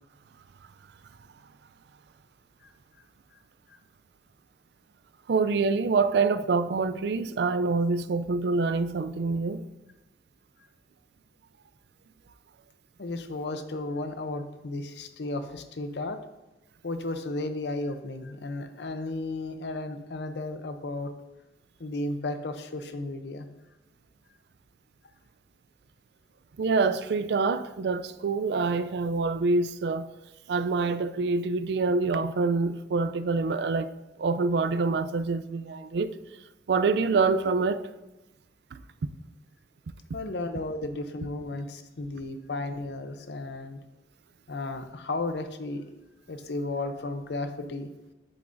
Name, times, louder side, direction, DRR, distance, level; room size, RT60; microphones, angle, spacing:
voice 1, 5.3-9.6 26.6-30.1 30.5-33.9 34.2-36.1 36.7-37.8 38.7-38.8, right 4 dB, 65° right, 0.4 m, -26 dB
voice 2, 13.0-16.2 16.8-21.1 21.8-23.5 40.1-43.8 44.5-45.8 46.3-47.9, left 2 dB, 70° left, 0.6 m, -34 dB
7.9 x 7.0 x 2.6 m
head